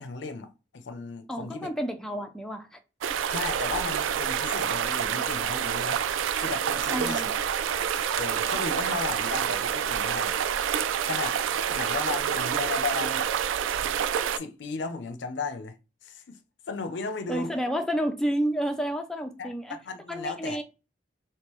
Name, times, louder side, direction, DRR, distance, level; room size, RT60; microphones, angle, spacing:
voice 1, 0.0-1.7 3.3-6.0 6.4-7.3 8.2-10.4 11.1-11.4 11.7-13.3 14.3-15.7 16.0-16.4 16.7-17.5 19.4-20.6, left 4 dB, 65° left, 0.5 m, -35 dB
voice 2, 1.3-2.8 6.9-7.3 17.3-19.8 20.1-20.6, equal, 5° left, 0.4 m, -30 dB
sound 1, 3.0-14.4, right 8 dB, 85° right, 0.3 m, -28 dB
3.6 x 2.8 x 3.0 m
head